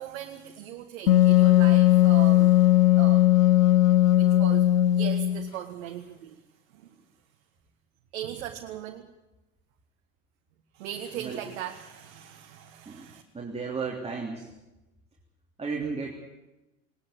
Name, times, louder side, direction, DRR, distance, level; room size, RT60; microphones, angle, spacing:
voice 1, 0.0-2.6 3.0-3.2 4.1-6.4 6.7-6.8 8.1-9.1 10.7-13.2, right 11 dB, 60° right, 4 dB, 1.7 m, -39 dB
Wind instrument woodwind instrument, 1.1-5.5, left 15 dB, 75° left, 0.8 m, -18 dB
voice 2, 13.3-14.5 15.6-16.1, right 4 dB, 15° right, -1 dB, 3.4 m, -33 dB
19.5 x 19.5 x 7.8 m, 1.0 s
figure-of-eight pair, 75°, 41 cm